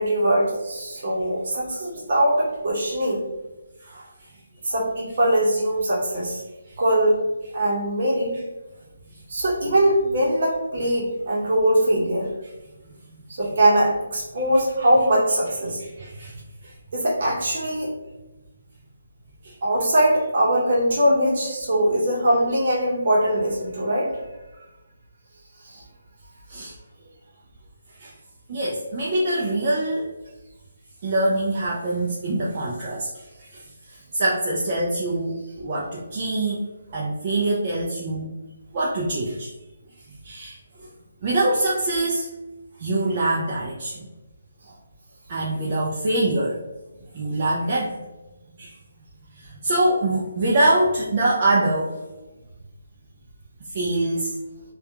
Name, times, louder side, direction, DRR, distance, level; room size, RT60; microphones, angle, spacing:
voice 1, 0.0-3.2 4.6-6.4 6.8-7.3 7.5-8.4 9.3-12.3 13.3-15.8 16.9-17.9 19.6-24.2 25.6-25.8, right 1 dB, 50° right, -3 dB, 0.8 m, -21 dB
voice 2, 3.8-4.3 6.7-6.8 15.8-16.7 19.4-19.5 26.5-26.7 28.0-28.1 28.5-30.1 31.0-36.6 36.9-38.4 38.7-39.5 40.2-40.6 41.2-42.3 42.8-44.1 45.3-46.6 47.1-48.0 48.6-48.8 49.3-52.0 53.7-54.3, right 2 dB, 35° right, -5 dB, 0.4 m, -24 dB
2.7 x 2.3 x 2.3 m, 1.1 s
hypercardioid pair, 170°, 0 cm